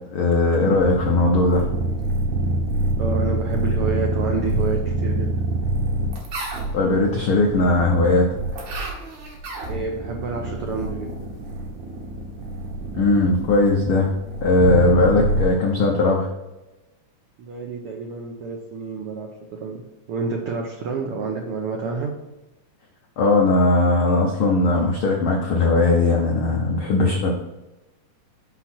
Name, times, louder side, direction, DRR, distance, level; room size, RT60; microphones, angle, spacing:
voice 1, 0.1-1.7 6.7-8.2 12.9-14.1 14.4-16.3 23.2-27.3, left 2 dB, 80° left, 0 dB, 1.1 m, -19 dB
sound 1, 0.7-15.4, right 2 dB, 65° right, 2.6 m, -26 dB
voice 2, 3.0-5.4 9.6-11.3 17.4-22.1, right 4 dB, 90° right, 1 dB, 1.2 m, -29 dB
6.0 x 5.9 x 4.3 m, 1.0 s
omnidirectional pair, 3.6 m